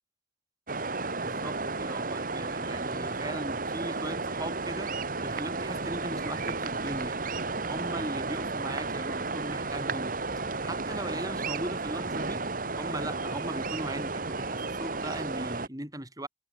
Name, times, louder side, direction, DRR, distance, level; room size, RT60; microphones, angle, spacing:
sound 1, 0.7-15.7, right 3 dB, 50° right, 2.3 m, -33 dB
voice 1, 1.1-7.2 7.7-10.1 10.6-12.4 12.8-16.3, right 1 dB, 20° right, 6.9 m, -38 dB
head